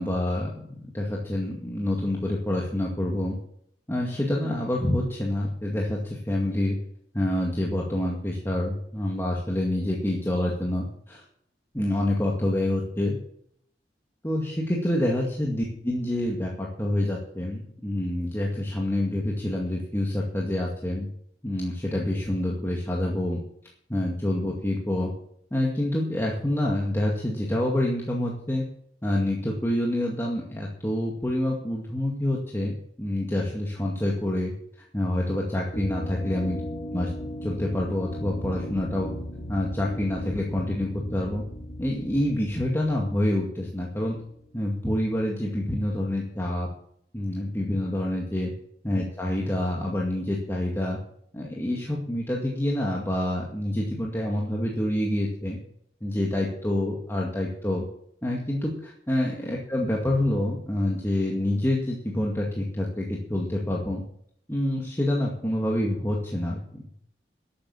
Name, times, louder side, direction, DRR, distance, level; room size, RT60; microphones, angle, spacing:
voice 1, 0.0-3.4 3.9-6.8 7.1-11.2 11.7-13.1 14.2-21.1 21.4-23.4 23.9-25.1 25.5-28.6 29.0-34.5 34.9-36.6 36.9-37.1 37.4-39.1 39.5-41.4 41.8-44.2 44.5-46.7 47.1-48.5 48.8-51.0 51.3-55.6 56.0-57.9 58.2-64.0 64.5-66.8, left 1 dB, 15° left, -2 dB, 2.1 m, -27 dB
sound 1, 35.7-44.4, equal, 45° left, 2.8 m, -37 dB
13.0 x 8.7 x 7.2 m, 0.66 s
head